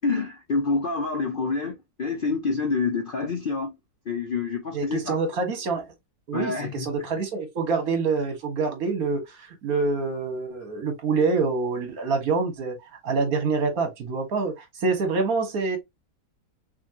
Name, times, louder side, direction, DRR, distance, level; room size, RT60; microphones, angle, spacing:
voice 1, 0.0-3.8 4.1-5.2 6.3-6.9, left 4 dB, 55° left, 0.6 m, -27 dB
voice 2, 4.7-5.8 6.3-12.8 13.0-15.8, right 4 dB, 65° right, 1.8 m, -26 dB
5.6 x 2.5 x 2.8 m
omnidirectional pair, 1.6 m